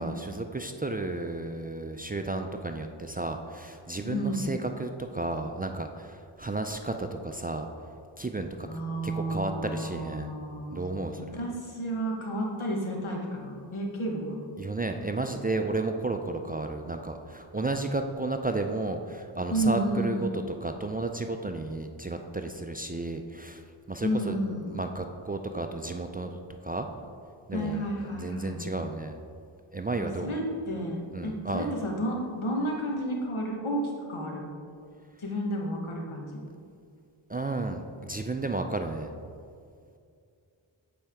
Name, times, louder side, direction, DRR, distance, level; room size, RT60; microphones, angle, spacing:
voice 1, 0.0-7.7 8.2-8.7 9.0-10.3 10.7-11.3 14.6-23.6 23.9-24.4 24.7-26.9 27.5-27.8 28.1-29.2 29.7-30.4 31.1-31.7 37.3-39.1, right 2 dB, 20° right, 5 dB, 0.3 m, -33 dB
voice 2, 4.0-4.5 8.6-10.9 11.2-14.4 19.5-20.3 24.0-24.8 27.5-28.6 30.0-33.8 34.1-34.5 35.2-36.5, right 1 dB, 85° left, 0 dB, 1.2 m, -31 dB
8.6 x 4.4 x 3.5 m, 2.3 s
wide cardioid pair, 50°, 48 cm